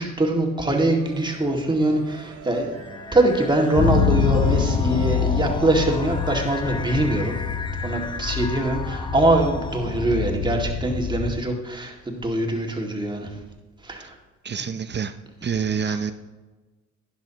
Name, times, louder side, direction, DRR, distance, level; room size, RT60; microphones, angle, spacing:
voice 1, 0.0-2.7 3.1-7.3 7.8-13.3 13.8-14.2 15.9-16.0, right 1 dB, 15° right, 0 dB, 2.1 m, -23 dB
sound 1, 0.6-7.5, right 5 dB, 90° right, 2.6 m, -44 dB
sound 2, 2.7-10.3, left 5 dB, 15° left, 0.4 m, -36 dB
sound 3, 3.8-11.3, left 6 dB, 45° left, 2.2 m, -25 dB
voice 2, 14.4-15.2 15.4-16.1, right 6 dB, 35° right, 10 dB, 0.6 m, -27 dB
12.0 x 10.5 x 2.9 m, 1.2 s
cardioid pair, 90°, 30 cm